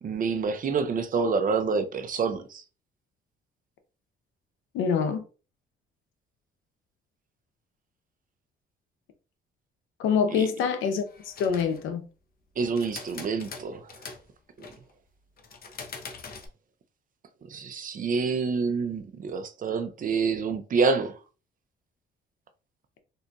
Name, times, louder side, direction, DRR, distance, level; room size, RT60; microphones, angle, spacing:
voice 1, 0.0-2.6 10.3-10.5 12.6-13.9 17.5-21.2, right 5 dB, 45° right, 0.5 m, -27 dB
voice 2, 4.7-5.2 10.0-12.0, left 6 dB, 90° left, 0.6 m, -26 dB
sound 1, 11.1-11.9 12.6-14.2 14.6-14.9 15.4-16.5, left 5 dB, 50° left, 0.7 m, -43 dB
3.7 x 2.6 x 2.3 m
cardioid pair, 90°, 20 cm